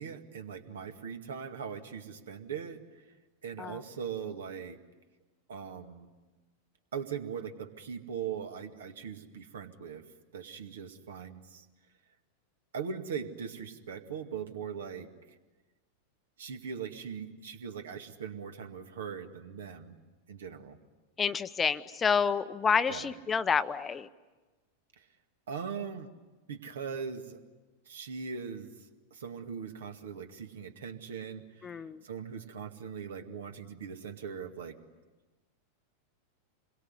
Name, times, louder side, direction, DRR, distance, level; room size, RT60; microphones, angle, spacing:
voice 1, 0.0-3.0 3.4-4.8 5.5-6.1 6.9-10.0 10.3-11.7 12.7-15.1 16.4-20.0 20.3-20.8 22.9-23.1 25.0-25.1 25.5-26.1 26.5-27.4 27.9-34.8, right 7 dB, 65° right, 7 dB, 2.1 m, -40 dB
voice 2, 21.2-24.1 31.6-32.0, left 6 dB, 20° left, 13 dB, 0.8 m, -29 dB
27.5 x 22.5 x 9.6 m, 1.2 s
figure-of-eight pair, 90°, 0 cm